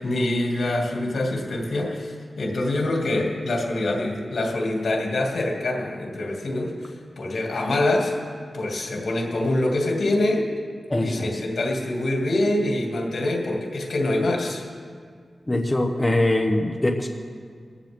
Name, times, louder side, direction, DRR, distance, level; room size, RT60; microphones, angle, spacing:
voice 1, 0.0-8.1 8.5-10.5 10.9-14.6, left 1 dB, 80° left, 0 dB, 2.6 m, -25 dB
voice 2, 10.9-11.3 15.5-17.1, left 1 dB, 20° left, 2 dB, 1.0 m, -22 dB
19.5 x 15.0 x 3.7 m, 2.1 s
wide cardioid pair, 95°, 0 cm